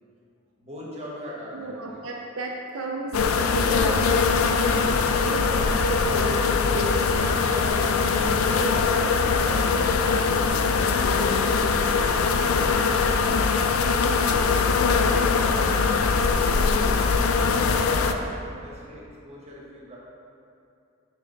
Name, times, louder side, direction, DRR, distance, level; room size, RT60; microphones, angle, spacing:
voice 1, 0.6-1.9 8.2-8.7 9.2-13.4 14.0-20.0, equal, 30° right, -6 dB, 1.3 m, -41 dB
voice 2, 1.5-7.9 8.5-9.3 10.0-10.5, right 2 dB, 80° right, 0 dB, 0.5 m, -34 dB
sound 1, 3.1-18.1, left 5 dB, 85° left, 0.4 m, -22 dB
5.8 x 3.4 x 5.2 m, 2.6 s
head